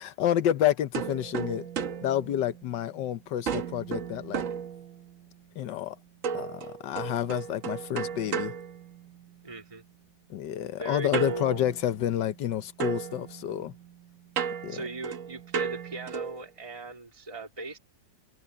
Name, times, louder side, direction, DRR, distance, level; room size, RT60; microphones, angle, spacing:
voice 1, 0.0-1.7 2.0-4.5 5.6-6.0 6.3-8.5 10.3-13.7 14.6-14.8, left 11 dB, 75° left, 1.5 m, -29 dB
sound 1, 0.9-3.0 3.5-5.3 6.2-9.5 11.1-12.5 12.8-16.5, right 7 dB, 50° right, 1.2 m, -35 dB
voice 2, 9.4-9.8 10.8-11.6 14.7-17.8, right 2 dB, 15° right, 2.7 m, -39 dB
omnidirectional pair, 2.0 m